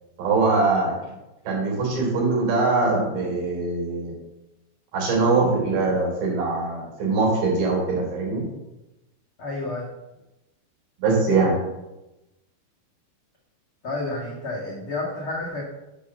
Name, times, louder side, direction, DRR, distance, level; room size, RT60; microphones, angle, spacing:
voice 1, 0.2-1.0 1.5-4.1 4.9-8.5 11.0-11.6, right 3 dB, 65° right, -2 dB, 5.4 m, -22 dB
voice 2, 9.4-9.9 13.8-15.6, left 2 dB, 60° left, -5 dB, 1.3 m, -30 dB
11.0 x 5.6 x 6.7 m, 0.98 s
omnidirectional pair, 5.6 m